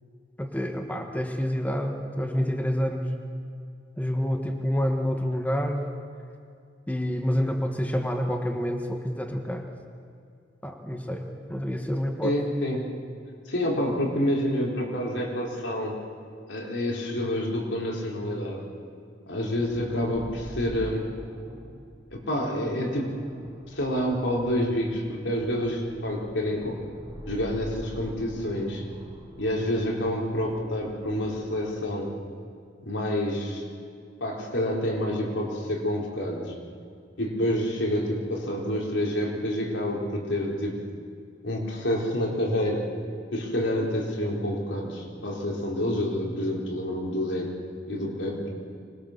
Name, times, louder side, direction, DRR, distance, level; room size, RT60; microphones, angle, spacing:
voice 1, 0.4-3.1 4.0-6.0 6.9-9.6 10.6-12.4, equal, 10° left, 3 dB, 1.4 m, -28 dB
voice 2, 12.2-12.8 13.5-15.9 16.5-18.6 19.3-21.1 22.1-23.2 23.7-26.8 27.3-28.8 29.4-32.1 32.9-33.6 34.2-36.5 37.2-40.8 41.4-42.9 43.3-47.5 47.9-48.5, left 1 dB, 80° left, -2 dB, 4.3 m, -28 dB
sound 1, 19.4-31.9, equal, 25° right, 2.7 m, -45 dB
25.0 x 21.0 x 6.7 m, 2.3 s
head